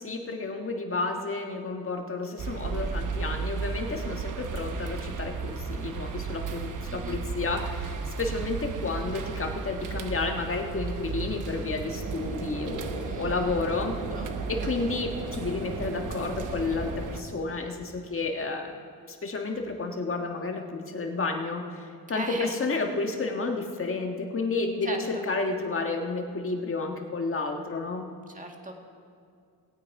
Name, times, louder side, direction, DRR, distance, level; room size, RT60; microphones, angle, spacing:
voice 1, 0.0-14.0 14.5-18.7 19.1-28.1, left 3 dB, 35° left, 3 dB, 1.6 m, -31 dB
sound 1, 2.4-17.2, right 5 dB, 55° right, 1.1 m, -35 dB
voice 2, 6.9-7.2 13.0-13.8 14.1-14.9 22.1-22.6 24.8-25.0 28.3-28.7, right 2 dB, 20° right, 2 dB, 1.9 m, -39 dB
sound 2, 11.9-17.0, right 3 dB, 85° right, 2.2 m, -38 dB
19.0 x 8.7 x 4.8 m, 2.3 s
cardioid pair, 95°, 37 cm